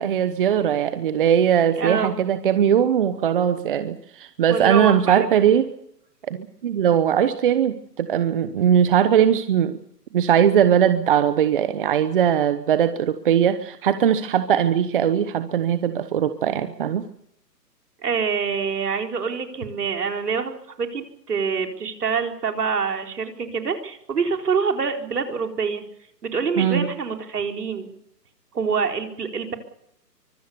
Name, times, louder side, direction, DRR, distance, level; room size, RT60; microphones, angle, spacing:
voice 1, 0.0-5.7 6.3-9.8 10.1-17.0 26.6-26.9, right 9 dB, 30° right, 12 dB, 1.0 m, -20 dB
voice 2, 1.7-2.1 4.5-5.3 18.0-25.8 26.2-27.9 28.6-29.5, right 5 dB, 70° right, 4 dB, 4.4 m, -26 dB
24.5 x 18.0 x 6.9 m, 0.74 s
hypercardioid pair, 150°, 49 cm